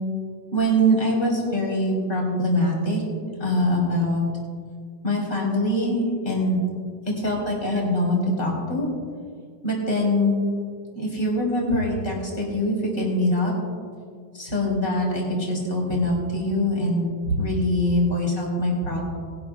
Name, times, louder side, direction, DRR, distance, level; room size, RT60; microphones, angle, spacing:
voice 1, 0.5-3.0 3.4-4.2 5.0-6.6 7.2-8.9 9.6-10.3 10.9-13.5 14.3-19.0, equal, 30° left, -3 dB, 3.5 m, -23 dB
20.5 x 11.5 x 2.4 m, 2.1 s
omnidirectional pair, 2.0 m